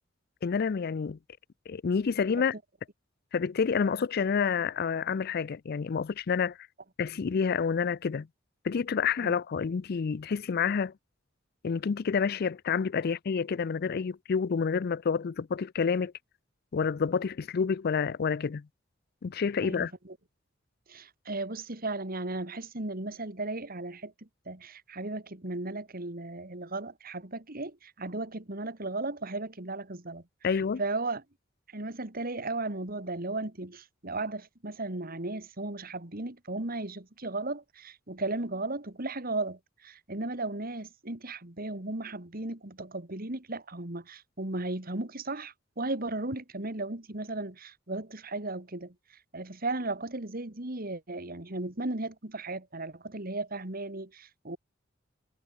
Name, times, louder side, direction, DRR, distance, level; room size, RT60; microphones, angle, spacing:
voice 1, 0.4-1.2 1.7-2.5 3.3-6.6 7.0-8.3 8.6-10.9 11.6-16.1 16.7-18.7 19.2-19.9 30.4-30.8, left 6 dB, 55° left, 0.4 m, -28 dB
voice 2, 19.6-20.2 20.9-31.2 31.7-54.6, right 2 dB, 50° right, 2.6 m, -36 dB
head